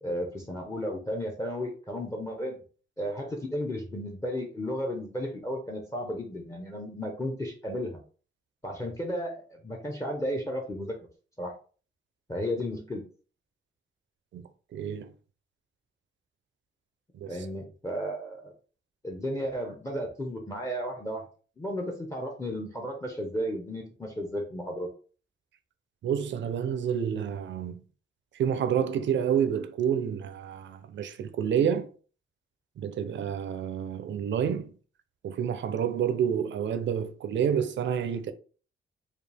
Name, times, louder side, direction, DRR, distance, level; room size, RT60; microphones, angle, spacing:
voice 1, 0.0-2.6 3.0-8.0 8.6-11.0 11.4-11.5 12.3-13.0 17.3-18.5 19.0-21.2 21.6-24.9, equal, 15° left, 0.7 m, -33 dB
voice 2, 14.3-15.1 17.1-17.3 26.0-27.8 28.3-31.9 32.8-34.7 35.2-38.3, right 8 dB, 65° right, 0.5 m, -29 dB
4.9 x 2.4 x 3.4 m
wide cardioid pair, 150°, 21 cm